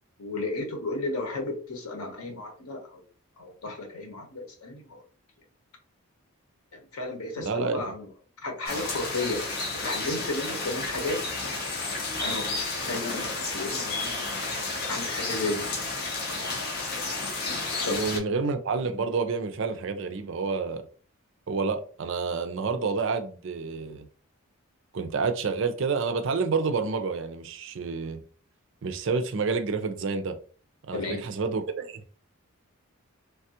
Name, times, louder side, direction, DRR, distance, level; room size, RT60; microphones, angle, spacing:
voice 1, 0.2-3.0 3.4-5.0 6.7-8.1 8.4-9.4 9.8-11.2 12.2-14.5 14.9-15.7 17.8-18.4 30.9-31.2, left 2 dB, 85° left, 0.9 m, -33 dB
voice 2, 7.4-7.9 17.9-20.8 21.5-24.1 24.9-28.2 28.8-30.4 30.9-32.0, right 4 dB, 55° right, 0.4 m, -29 dB
sound 1, 8.7-18.2, left 3 dB, 45° left, 0.7 m, -31 dB
3.3 x 2.3 x 2.8 m
head